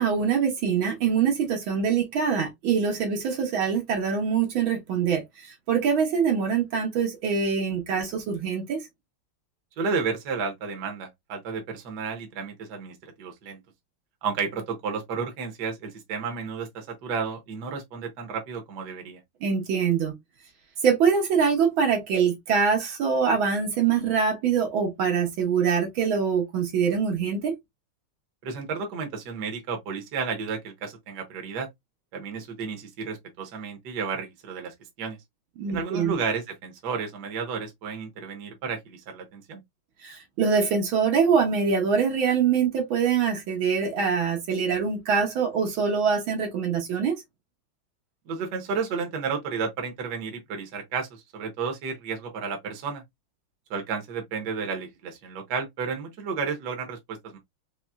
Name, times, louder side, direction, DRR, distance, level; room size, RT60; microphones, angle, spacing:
voice 1, 0.0-5.2 5.7-8.8 19.4-20.1 20.8-27.6 35.6-36.1 40.0-47.2, right 6 dB, 75° right, 1.8 m, -24 dB
voice 2, 9.8-13.6 14.2-19.2 28.4-31.7 32.1-35.2 35.7-39.6 48.3-53.0 53.7-57.4, right 5 dB, 60° right, 1.4 m, -32 dB
4.2 x 3.1 x 2.2 m
omnidirectional pair, 2.2 m